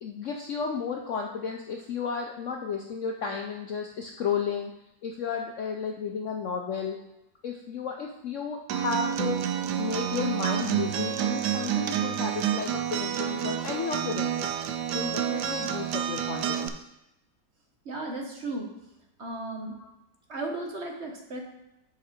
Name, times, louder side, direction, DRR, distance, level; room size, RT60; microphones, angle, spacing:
voice 1, 0.0-4.7 5.0-7.0 7.4-14.6 14.9-16.8 19.6-19.9, left 6 dB, 65° left, 2 dB, 0.7 m, -33 dB
Acoustic guitar, 8.7-16.7, right 9 dB, 80° right, 1.2 m, -29 dB
voice 2, 17.9-18.7 19.2-19.7 20.3-21.4, right 2 dB, 45° right, 2 dB, 1.1 m, -35 dB
7.2 x 5.5 x 4.3 m, 0.92 s
omnidirectional pair, 1.9 m